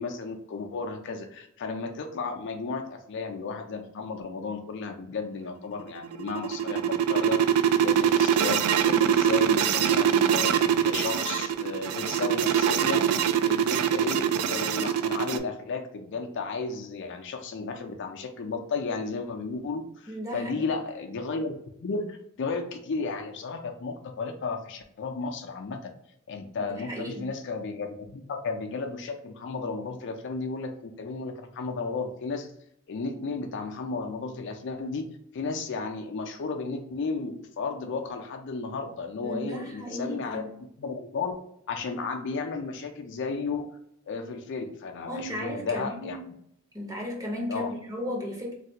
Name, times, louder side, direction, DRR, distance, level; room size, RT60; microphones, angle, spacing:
voice 1, 0.0-13.2 13.4-21.5 21.8-25.9 26.3-32.5 32.9-35.1 35.3-40.4 40.8-41.4 41.7-43.7 44.1-46.4 47.5-47.7, left 4 dB, 55° left, 4 dB, 0.4 m, -34 dB
sound 1, 6.0-15.4, right 9 dB, 85° right, 0.3 m, -23 dB
voice 2, 20.1-20.7 26.7-27.3 39.2-40.5 45.1-46.2 46.7-48.5, equal, 15° right, -1 dB, 0.8 m, -35 dB
3.2 x 2.3 x 2.8 m, 0.73 s
head